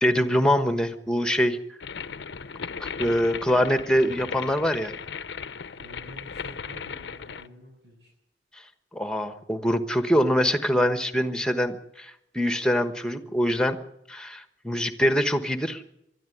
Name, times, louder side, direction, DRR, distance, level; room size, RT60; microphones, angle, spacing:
voice 1, 0.0-1.6 3.0-4.9 8.9-13.8 14.1-15.8, equal, 5° left, 9 dB, 1.2 m, -24 dB
sound 1, 1.8-7.5, left 6 dB, 75° left, 0.7 m, -37 dB
voice 2, 5.7-8.1, right 1 dB, 85° right, -3 dB, 7.6 m, -48 dB
21.5 x 13.0 x 9.3 m, 0.83 s
head